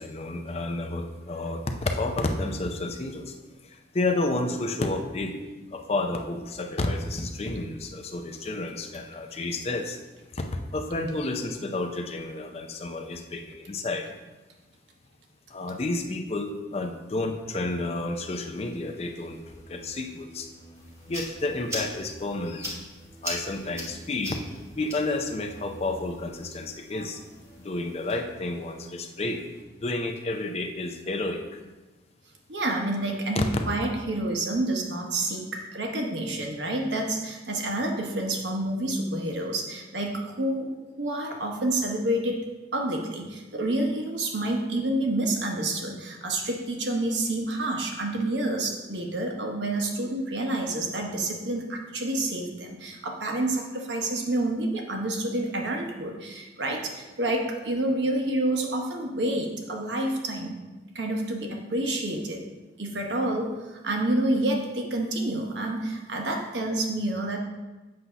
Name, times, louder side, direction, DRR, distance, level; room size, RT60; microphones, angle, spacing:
voice 1, 0.0-3.3 3.9-5.4 5.7-10.0 10.3-14.0 15.5-20.5 21.1-22.7 23.2-24.4 24.8-27.2 27.6-29.4 29.8-31.6 33.4-33.5, left 2 dB, 35° left, 4 dB, 0.5 m, -30 dB
sound 1, 18.1-29.6, equal, 20° left, 1.0 m, -51 dB
sound 2, 20.8-28.2, equal, 15° right, 1.1 m, -41 dB
voice 2, 32.5-40.7 41.0-42.4 42.7-60.6 60.9-62.4 62.8-67.4, right 1 dB, 80° right, 1 dB, 1.0 m, -28 dB
7.8 x 2.7 x 5.6 m, 1.2 s
head